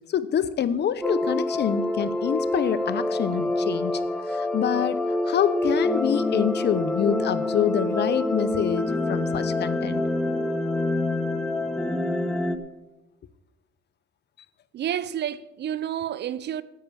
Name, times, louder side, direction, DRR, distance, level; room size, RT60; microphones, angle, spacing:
voice 1, 0.1-4.0 4.3-5.0 5.2-10.0, left 8 dB, 60° left, 0.9 m, -26 dB
sound 1, 1.0-12.6, left 2 dB, 5° left, 1.2 m, -26 dB
voice 2, 14.7-16.6, right 10 dB, 60° right, 0.6 m, -30 dB
10.5 x 8.3 x 7.4 m
cardioid pair, 90°, 20 cm